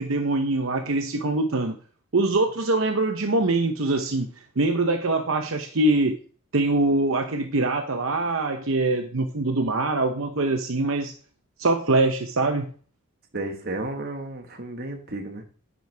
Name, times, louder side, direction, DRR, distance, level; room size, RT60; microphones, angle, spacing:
voice 1, 0.0-1.8 2.1-4.3 4.6-6.1 6.5-11.1 11.6-12.7, right 2 dB, 65° right, 5 dB, 0.8 m, -23 dB
voice 2, 13.3-15.4, right 2 dB, 45° right, 4 dB, 1.5 m, -33 dB
9.9 x 9.4 x 3.4 m, 0.42 s
head